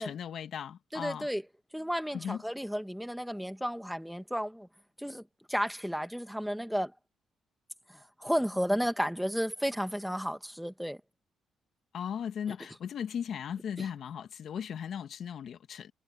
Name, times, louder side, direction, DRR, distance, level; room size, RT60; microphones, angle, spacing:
voice 1, 0.0-1.3 2.1-2.4 11.9-15.9, left 8 dB, 65° left, 1.7 m, -37 dB
voice 2, 0.9-1.4 1.7-4.7 5.0-5.2 5.5-6.9 7.9-11.0 13.8-13.9, equal, ahead, 1.7 m, -33 dB
cardioid pair, 90°, 0 cm